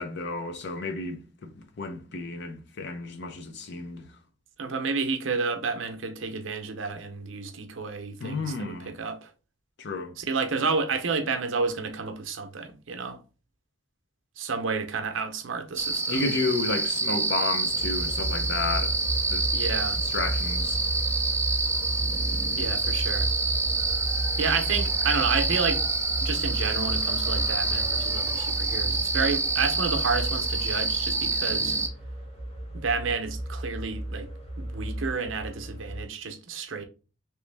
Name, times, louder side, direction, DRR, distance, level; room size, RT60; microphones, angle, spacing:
voice 1, 0.0-4.1 8.2-9.0 9.8-10.2 16.1-19.0 19.3-19.4 20.0-20.8, left 3 dB, 60° left, 0.6 m, -32 dB
voice 2, 4.6-9.3 10.2-13.2 14.4-16.3 19.5-20.0 22.6-23.3 24.4-25.8 26.2-31.8 32.7-34.3 34.6-36.8, right 4 dB, 70° right, 0.7 m, -30 dB
sound 1, 15.8-31.9, right 3 dB, 15° right, 0.4 m, -27 dB
sound 2, 17.7-36.0, right 1 dB, 30° left, 0.9 m, -33 dB
3.1 x 3.0 x 3.3 m
head